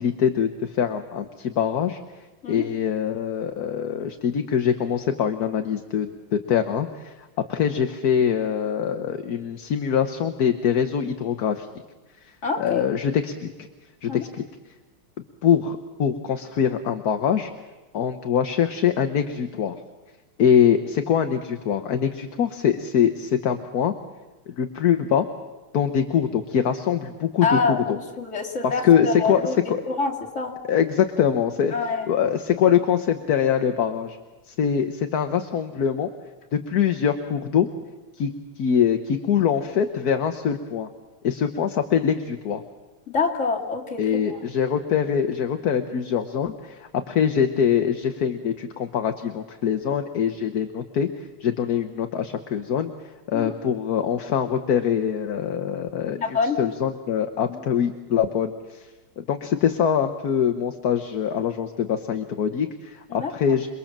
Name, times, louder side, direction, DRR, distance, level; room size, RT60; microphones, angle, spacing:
voice 1, 0.0-2.0 2.5-7.1 7.5-11.7 12.6-13.7 14.0-14.4 15.4-17.5 17.9-19.8 20.4-23.9 24.5-25.3 25.7-27.8 28.6-29.4 29.7-29.8 30.7-31.7 32.1-34.2 34.5-36.1 36.5-37.7 38.2-40.9 41.2-42.6 44.0-51.1 51.4-52.9 53.3-58.9 59.2-63.7, left 8 dB, 55° left, 7 dB, 1.4 m, -23 dB
voice 2, 12.4-12.8 14.1-14.2 27.4-29.6 29.9-30.6 31.7-32.1 43.1-44.4 53.3-53.5 56.2-56.6 57.5-57.6 63.1-63.3, left 4 dB, 35° left, 0 dB, 2.7 m, -26 dB
28.0 x 21.5 x 7.4 m, 1.2 s
omnidirectional pair, 2.3 m